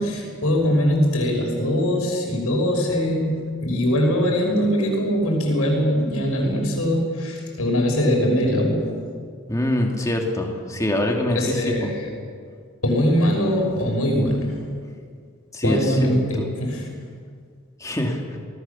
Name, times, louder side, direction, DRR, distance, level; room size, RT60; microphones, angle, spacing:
voice 1, 0.0-8.9 11.3-12.1 12.8-14.7 15.6-16.9, equal, 80° left, 1 dB, 5.9 m, -22 dB
voice 2, 9.5-11.9 15.5-16.0 17.8-18.2, left 1 dB, 15° left, 1 dB, 2.5 m, -24 dB
26.0 x 19.0 x 7.1 m, 2.1 s
head